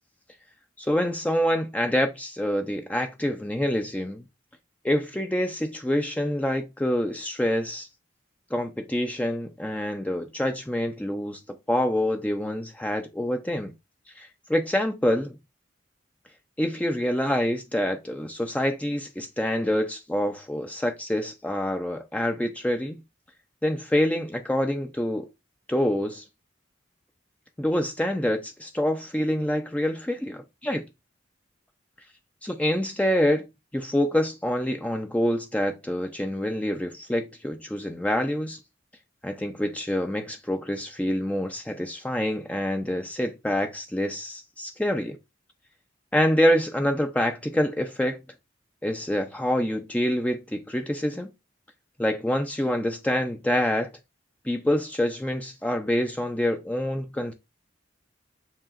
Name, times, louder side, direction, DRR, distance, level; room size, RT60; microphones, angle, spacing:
voice 1, 0.8-4.2 4.8-7.9 8.5-11.4 11.7-13.7 14.2-15.4 16.6-23.0 23.6-25.3 25.7-26.2 27.6-30.8 32.4-33.4 33.7-38.6 39.2-45.2 46.1-48.2 48.8-51.3 52.0-53.9 54.4-57.3, left 1 dB, 5° left, 0.5 m, -26 dB
7.2 x 2.9 x 2.4 m
head